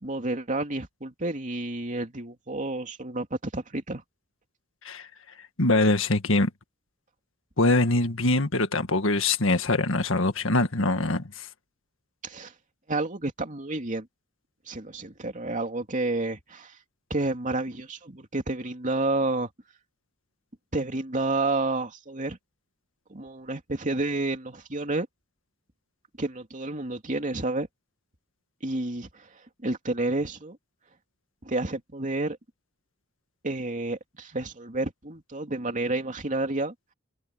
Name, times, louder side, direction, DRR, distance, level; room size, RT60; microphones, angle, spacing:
voice 1, 0.0-4.0 12.2-12.5 12.9-14.1 14.7-16.8 17.1-19.5 20.7-22.4 23.1-25.1 26.2-27.7 28.6-30.6 31.4-32.4 33.4-36.7, right 2 dB, 40° right, 2.8 m, -30 dB
voice 2, 5.6-6.5 7.6-11.5, left 2 dB, 70° left, 1.8 m, -23 dB
head